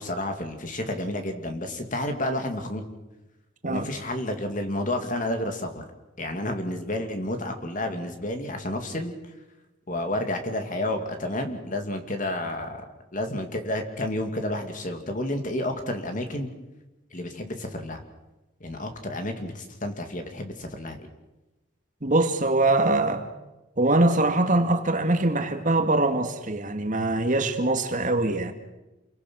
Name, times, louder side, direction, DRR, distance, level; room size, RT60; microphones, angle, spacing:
voice 1, 0.0-2.8 3.6-5.8 6.2-9.1 9.9-12.9 13.1-16.5 17.1-18.0 18.6-21.1, left 1 dB, 40° left, 2.7 m, -30 dB
voice 2, 22.0-23.3 23.8-28.5, right 2 dB, 40° right, 2.1 m, -23 dB
29.0 x 22.0 x 6.4 m
head